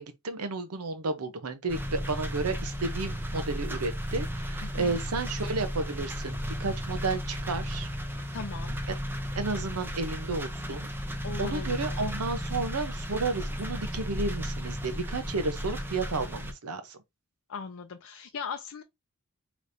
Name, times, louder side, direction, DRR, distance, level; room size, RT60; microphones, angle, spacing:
voice 1, 0.0-7.9 8.9-9.0 9.4-10.9 11.4-17.0, right 3 dB, 90° right, 0.8 m, -32 dB
sound 1, 1.7-16.5, equal, 10° right, 0.6 m, -34 dB
voice 2, 4.6-5.0 8.3-8.8 11.2-12.2 17.5-18.8, left 5 dB, 65° left, 0.6 m, -39 dB
5.1 x 3.1 x 2.6 m
head